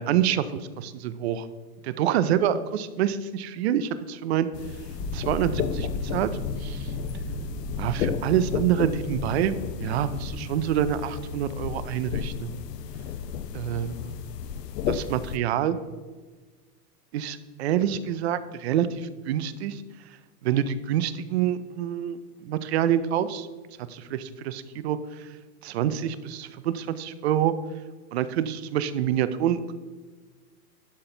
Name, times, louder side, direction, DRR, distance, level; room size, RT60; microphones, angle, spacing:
voice 1, 0.0-1.5 1.8-4.5 5.1-6.3 6.6-6.9 7.8-12.6 13.5-14.2 14.9-15.8 17.1-19.8 20.4-23.5 23.9-25.3 25.6-27.5 28.1-29.7, right 10 dB, 45° right, 14 dB, 0.5 m, -27 dB
sound 1, 4.5-15.4, left 8 dB, 85° left, 0.7 m, -33 dB
sound 2, 4.9-10.9, left 1 dB, 15° left, 0.9 m, -35 dB
11.5 x 4.1 x 3.8 m, 1.4 s
hypercardioid pair, 145°, 47 cm